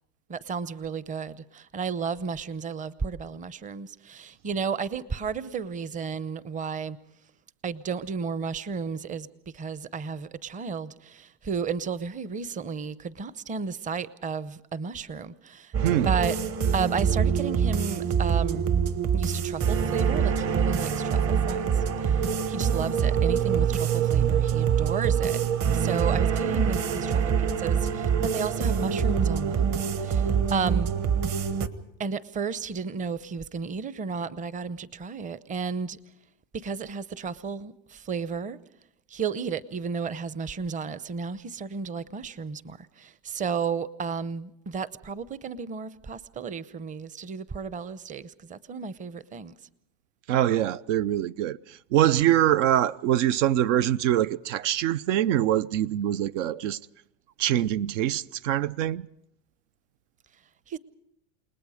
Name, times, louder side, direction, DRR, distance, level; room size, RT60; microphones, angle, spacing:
voice 1, 0.3-7.0 7.6-9.3 9.5-15.7 16.0-16.4 16.7-18.7 19.1-21.7 22.0-25.4 25.7-29.7 30.0-30.9 32.0-36.0 36.6-38.6 39.1-49.5 60.7-60.8, right 5 dB, 20° right, 0.8 m, -33 dB
sound 1, 15.7-31.7, right 7 dB, 40° right, 1.5 m, -25 dB
voice 2, 15.8-16.1 20.5-20.6 50.3-56.8 57.4-59.1, right 12 dB, 75° right, 0.7 m, -24 dB
29.5 x 19.5 x 5.0 m
supercardioid pair, 120°, 37 cm